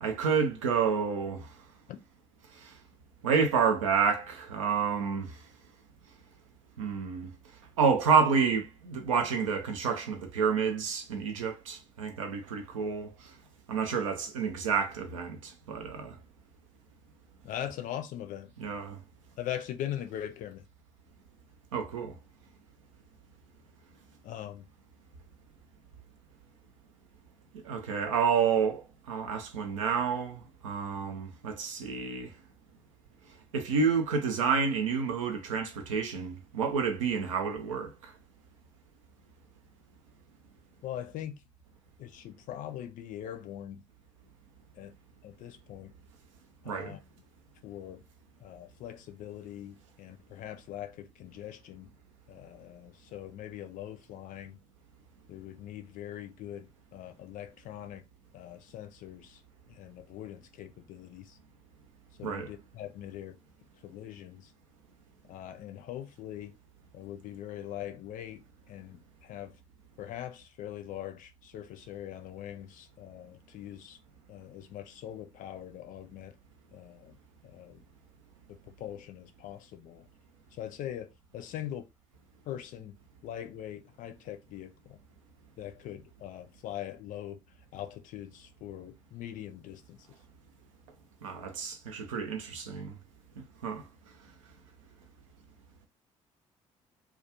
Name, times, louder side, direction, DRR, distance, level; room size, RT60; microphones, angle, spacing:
voice 1, 0.0-1.5 2.6-2.7 3.2-5.4 6.8-7.3 7.8-13.1 13.7-16.2 18.6-19.0 21.7-22.1 27.6-32.3 33.5-38.1 46.7-47.0 62.2-62.5 91.2-92.9 93.4-93.8, right 6 dB, 75° right, 0.5 m, -29 dB
voice 2, 17.4-18.5 19.4-20.6 24.2-24.7 40.8-41.4 42.0-43.8 44.7-44.9 45.2-45.9 46.6-47.0 47.6-48.0 48.4-51.9 52.3-54.6 55.3-58.0 58.3-59.4 59.7-61.4 62.2-63.4 63.8-64.5 65.2-66.6 66.9-69.6 70.0-74.0 74.3-76.3 76.7-77.2 77.4-77.8 78.5-80.1 80.5-81.9 82.4-83.0 83.2-85.0 85.6-90.1, left 11 dB, 50° left, 0.5 m, -42 dB
2.3 x 2.3 x 2.9 m
figure-of-eight pair, 45°, 17 cm